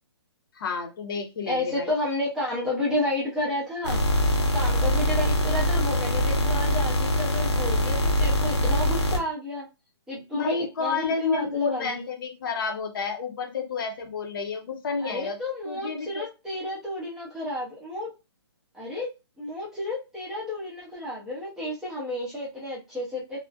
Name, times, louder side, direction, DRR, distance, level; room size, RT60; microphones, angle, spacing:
voice 1, 0.5-1.9 10.3-15.4 15.6-16.3, left 4 dB, 50° left, 4 dB, 0.6 m, -30 dB
voice 2, 1.5-4.0 4.5-9.7 10.1-12.0 15.0-18.1 18.7-19.1 19.4-23.4, left 1 dB, 5° right, -7 dB, 0.4 m, -31 dB
sound 1, 3.8-9.2, equal, 85° left, 0.8 m, -23 dB
2.3 x 2.0 x 2.6 m, 0.27 s
hypercardioid pair, 155°, 14 cm